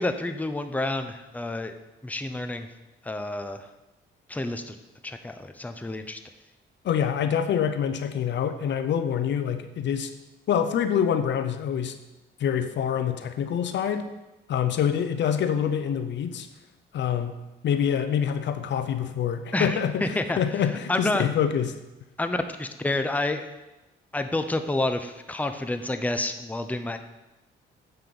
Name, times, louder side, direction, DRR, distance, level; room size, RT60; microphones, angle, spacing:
voice 1, 0.0-1.8 2.0-2.7 3.0-3.7 4.3-4.8 5.0-6.2 19.5-20.4 20.9-21.2 22.2-23.5 24.1-27.0, left 2 dB, 10° left, 7 dB, 0.7 m, -29 dB
voice 2, 6.8-10.1 10.5-12.0 12.4-14.1 14.5-16.5 16.9-21.8, left 8 dB, 65° left, 10 dB, 0.8 m, -26 dB
7.9 x 5.7 x 6.9 m, 1.0 s
cardioid pair, 90°, 20 cm